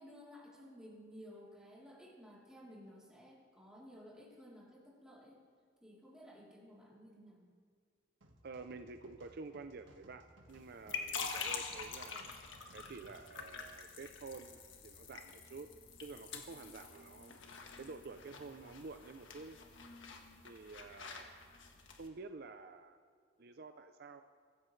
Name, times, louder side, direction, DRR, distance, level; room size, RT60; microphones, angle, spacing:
voice 1, 0.0-5.4 5.8-7.5, equal, 5° right, -6 dB, 3.4 m, -55 dB
sound 1, 8.2-13.5, right 1 dB, 85° right, 1.6 m, -62 dB
voice 2, 8.4-12.3 12.7-15.7 16.0-17.4 17.8-19.6 20.4-21.4 21.9-23.0 23.4-24.2, right 3 dB, 55° right, 8 dB, 0.5 m, -50 dB
sound 2, 10.5-22.1, left 5 dB, 85° left, 1.4 m, -46 dB
23.5 x 14.5 x 3.3 m, 2.1 s
head